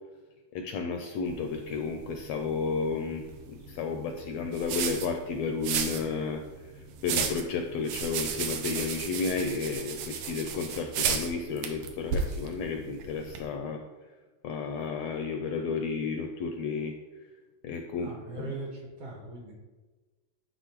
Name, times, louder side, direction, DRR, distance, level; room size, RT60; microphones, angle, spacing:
voice 1, 0.5-6.4 7.0-13.8 14.4-17.2 17.6-18.1 18.4-18.5, left 5 dB, 80° left, 4 dB, 1.5 m, -32 dB
sound 1, 1.3-13.4, right 6 dB, 85° right, 2.2 m, -35 dB
voice 2, 18.0-19.5, right 3 dB, 60° right, -1 dB, 2.1 m, -40 dB
11.0 x 4.1 x 3.0 m, 1.3 s
omnidirectional pair, 3.4 m